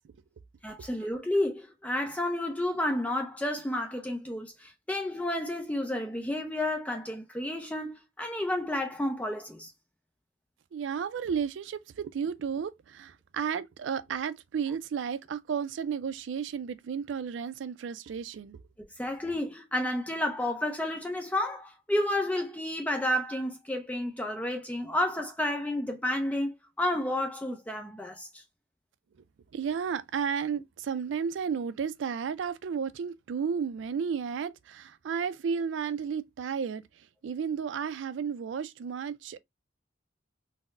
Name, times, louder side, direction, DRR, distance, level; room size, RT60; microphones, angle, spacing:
voice 1, 0.6-9.7 19.0-28.4, left 1 dB, 10° left, 0.4 m, -31 dB
voice 2, 10.7-18.6 29.5-36.8 37.2-39.4, right 6 dB, 75° right, 0.3 m, -33 dB
4.0 x 2.0 x 2.4 m
head